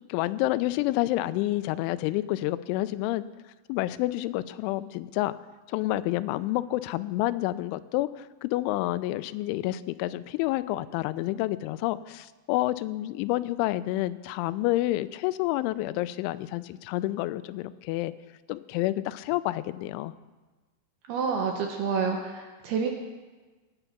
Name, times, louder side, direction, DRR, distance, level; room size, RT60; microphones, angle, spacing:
voice 1, 0.1-3.3 3.7-5.3 5.7-18.1 18.5-20.1, left 16 dB, 85° left, 14 dB, 2.9 m, -29 dB
voice 2, 21.1-22.9, right 6 dB, 75° right, 2 dB, 2.5 m, -28 dB
19.5 x 8.0 x 5.9 m, 1.3 s
omnidirectional pair, 5.6 m